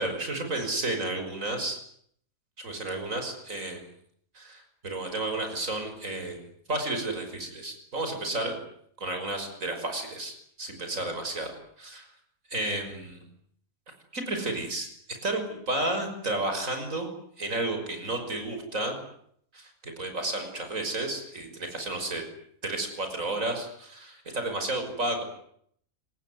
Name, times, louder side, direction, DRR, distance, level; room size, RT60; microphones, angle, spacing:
voice 1, 0.0-1.8 2.6-3.8 4.3-6.4 6.7-8.6 9.0-11.5 11.8-12.1 12.5-13.2 14.1-14.9 15.2-17.1 17.4-19.0 19.5-22.2 22.6-25.2, right 2 dB, 70° right, 6 dB, 6.2 m, -32 dB
26.5 x 20.0 x 9.5 m, 0.67 s
omnidirectional pair, 1.4 m